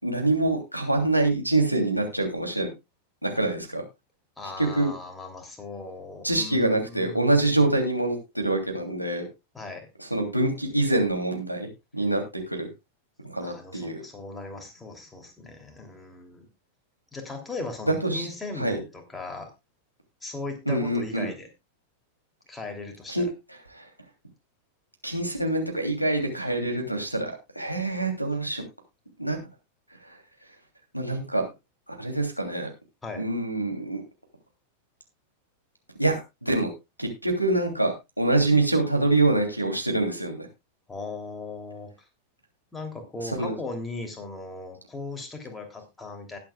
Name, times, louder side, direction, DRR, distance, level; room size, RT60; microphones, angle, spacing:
voice 1, 0.0-2.7 3.2-3.8 4.6-4.9 6.2-9.2 10.0-11.7 11.9-12.7 13.2-14.0 17.8-18.3 18.6-18.8 20.6-21.3 23.1-23.3 23.7-23.8 25.0-28.6 29.2-29.4 30.1-30.2 30.9-31.5 31.9-32.7 33.2-34.0 36.0-36.7 37.0-40.5 43.2-43.5, right 2 dB, 90° right, 2 dB, 3.0 m, -25 dB
voice 2, 4.4-7.6 9.5-9.9 13.4-16.5 17.1-19.5 20.2-21.5 22.5-23.3 33.0-33.2 40.9-41.9 42.7-46.4, left 3 dB, 10° left, 4 dB, 3.1 m, -38 dB
19.5 x 8.3 x 2.4 m, 0.23 s
figure-of-eight pair, 90°, 0 cm